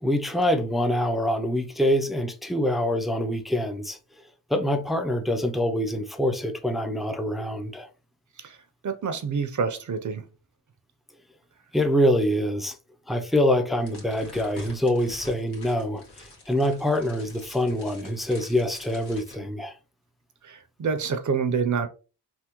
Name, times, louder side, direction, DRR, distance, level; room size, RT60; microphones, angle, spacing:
voice 1, 0.0-4.0 4.5-7.9 11.7-12.8 13.1-19.7, left 1 dB, ahead, 0.4 m, -25 dB
voice 2, 8.8-10.2 20.4-21.9, right 5 dB, 50° right, 0.6 m, -27 dB
sound 1, 13.8-19.3, left 2 dB, 70° left, 1.5 m, -46 dB
3.4 x 2.2 x 2.9 m
wide cardioid pair, 80°, 40 cm